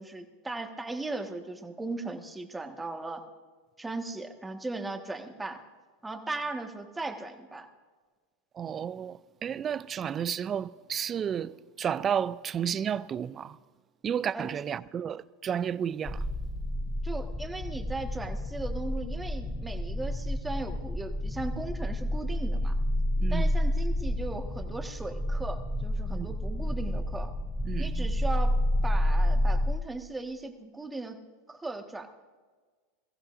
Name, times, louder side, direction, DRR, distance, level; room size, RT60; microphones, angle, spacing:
voice 1, 0.0-3.2 3.8-5.6 6.0-7.7 14.3-14.5 17.0-22.7 23.3-27.3 27.8-28.5 28.8-31.2 31.5-32.1, right 2 dB, 10° right, 1.6 m, -37 dB
voice 2, 8.5-13.6 14.0-16.3 23.2-23.5 26.1-26.3 27.6-28.1, right 8 dB, 30° right, 0.5 m, -32 dB
sound 1, 16.1-29.8, left 1 dB, 15° left, 0.6 m, -29 dB
22.0 x 15.0 x 2.6 m
hypercardioid pair, 95°, 0 cm